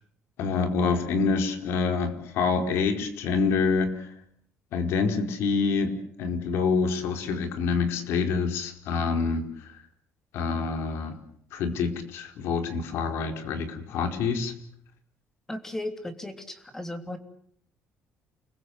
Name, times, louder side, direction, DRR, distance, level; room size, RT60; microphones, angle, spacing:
voice 1, 0.4-4.1 4.7-9.7 10.3-11.1 11.5-14.5, left 5 dB, 70° left, 6 dB, 4.6 m, -27 dB
voice 2, 15.5-17.2, left 1 dB, 10° left, 7 dB, 3.2 m, -35 dB
29.5 x 21.5 x 8.3 m, 0.66 s
cardioid pair, 170°, 4 cm